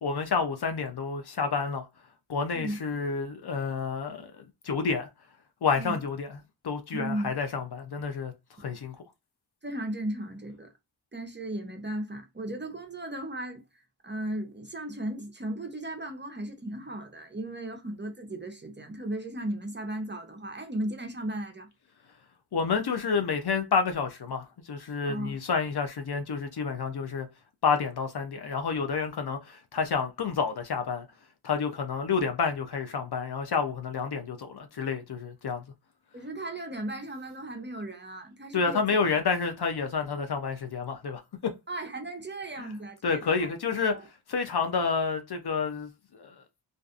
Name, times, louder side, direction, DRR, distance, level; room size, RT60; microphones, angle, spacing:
voice 1, 0.0-1.9 2.3-5.1 5.6-6.4 6.6-8.3 8.6-9.0 22.5-27.3 27.6-31.1 31.4-35.6 38.5-41.5 42.6-42.7 43.0-46.4, left 5 dB, 55° left, 0.6 m, -29 dB
voice 2, 6.9-7.4 9.6-10.7 11.1-21.7 25.0-25.4 36.1-38.8 41.7-43.5 43.9-44.1, right 1 dB, 25° right, 0.6 m, -36 dB
2.5 x 2.4 x 2.4 m
cardioid pair, 50°, 47 cm